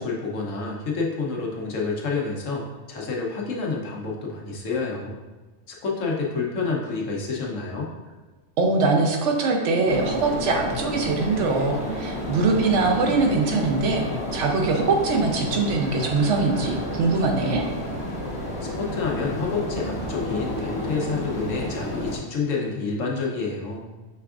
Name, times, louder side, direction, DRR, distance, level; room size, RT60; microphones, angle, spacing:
voice 1, 0.0-5.2 5.7-7.9 18.6-23.8, left 4 dB, 85° left, -1 dB, 1.2 m, -28 dB
voice 2, 8.6-14.0 14.3-17.6, right 3 dB, 70° right, 2 dB, 1.0 m, -22 dB
sound 1, 9.9-22.2, left 1 dB, 30° left, 0.8 m, -31 dB
5.7 x 3.4 x 2.4 m, 1.3 s
omnidirectional pair, 1.3 m